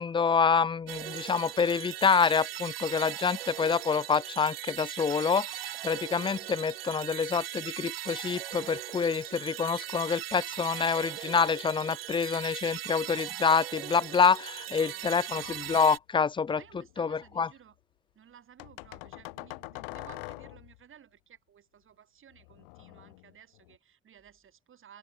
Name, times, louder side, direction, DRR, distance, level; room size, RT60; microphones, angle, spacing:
voice 1, 0.0-16.6 17.0-17.5, left 5 dB, 15° left, 0.4 m, -27 dB
sound 1, 0.9-16.0, right 13 dB, 75° right, 0.7 m, -39 dB
voice 2, 14.7-15.5 16.5-17.8 18.1-25.0, right 9 dB, 45° right, 3.2 m, -55 dB
sound 2, 15.4-15.9 16.5-17.4 18.6-20.8 22.3-23.7, left 27 dB, 65° left, 0.7 m, -45 dB
open air
figure-of-eight pair, 45°, 30 cm